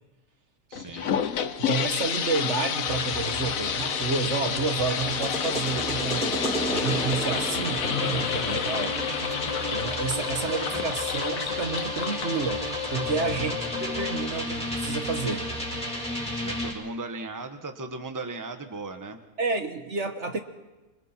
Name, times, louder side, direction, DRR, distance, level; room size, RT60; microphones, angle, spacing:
sound 1, 0.7-13.2, left 8 dB, 65° left, 1.3 m, -30 dB
voice 1, 0.7-1.2 10.4-10.9 13.3-13.5 16.3-19.2, right 3 dB, 15° right, 6 dB, 1.3 m, -37 dB
voice 2, 1.6-6.4 6.7-8.9 9.7-15.5 19.4-20.4, right 4 dB, 55° right, 6 dB, 1.6 m, -30 dB
sound 2, 2.8-16.7, equal, 5° left, 4.6 m, -32 dB
sound 3, 8.0-14.2, left 9 dB, 30° left, 0.9 m, -35 dB
26.0 x 24.5 x 4.5 m, 1.1 s
omnidirectional pair, 1.5 m